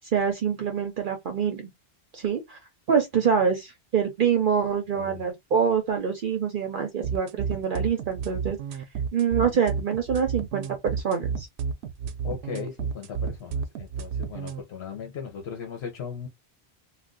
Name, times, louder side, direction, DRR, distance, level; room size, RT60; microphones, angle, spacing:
voice 1, 0.1-1.7 2.1-2.6 2.9-8.6 9.1-11.5, right 7 dB, 60° right, 0.7 m, -25 dB
sound 1, 7.0-14.6, right 6 dB, 90° right, 0.8 m, -31 dB
voice 2, 12.2-16.3, left 7 dB, 75° left, 1.0 m, -37 dB
2.5 x 2.3 x 3.7 m
omnidirectional pair, 1.1 m